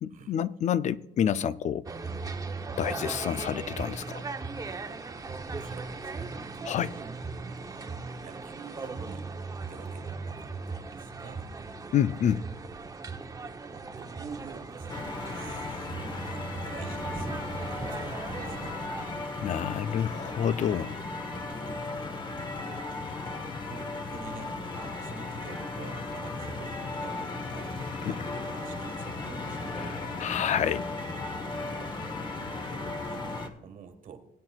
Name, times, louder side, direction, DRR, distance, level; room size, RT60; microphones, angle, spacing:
voice 1, 0.0-1.9 2.8-4.2 6.7-6.9 11.9-12.4 19.4-21.0 28.1-28.2 30.2-30.9, left 9 dB, 45° left, 0.4 m, -28 dB
sound 1, 1.9-19.1, right 4 dB, 20° right, 0.8 m, -38 dB
voice 2, 5.6-7.1 7.7-9.3 9.7-11.5 13.7-17.5 17.9-18.8 21.2-21.7 22.6-22.9 23.6-30.1 31.6-32.0 32.6-34.2, right 5 dB, 50° right, 1.6 m, -48 dB
sound 2, 14.9-33.5, left 3 dB, 30° left, 1.1 m, -36 dB
19.5 x 8.8 x 2.4 m
cardioid pair, 110°, 17 cm